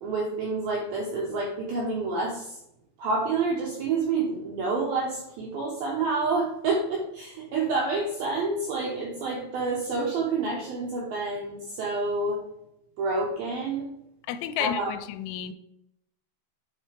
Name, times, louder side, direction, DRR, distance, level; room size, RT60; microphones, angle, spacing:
voice 1, 0.0-2.6 3.0-12.4 13.0-13.9 14.6-14.9, right 3 dB, 80° right, -3 dB, 2.2 m, -28 dB
voice 2, 14.3-15.5, left 11 dB, 90° left, 11 dB, 3.0 m, -31 dB
8.7 x 4.4 x 3.4 m, 0.82 s
omnidirectional pair, 5.5 m